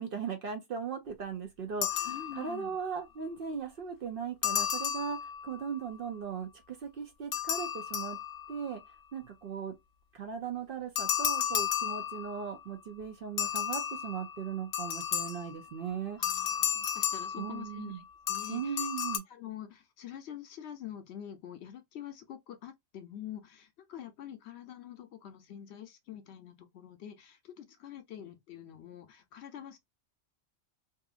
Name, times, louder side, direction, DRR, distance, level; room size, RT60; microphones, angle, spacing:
voice 1, 0.0-8.2 8.5-8.8 9.1-9.7 10.1-16.2 17.4-18.0 18.5-19.2, right 7 dB, 60° right, 0.6 m, -38 dB
sound 1, 1.8-2.8 4.4-5.7 7.3-8.7 11.0-12.6 13.4-15.6 16.2-17.9 18.3-19.2, left 9 dB, 90° left, 0.9 m, -33 dB
voice 2, 2.0-2.8 16.2-18.0 18.3-18.9 19.3-29.8, left 10 dB, 65° left, 0.8 m, -46 dB
2.7 x 2.5 x 2.3 m
omnidirectional pair, 1.3 m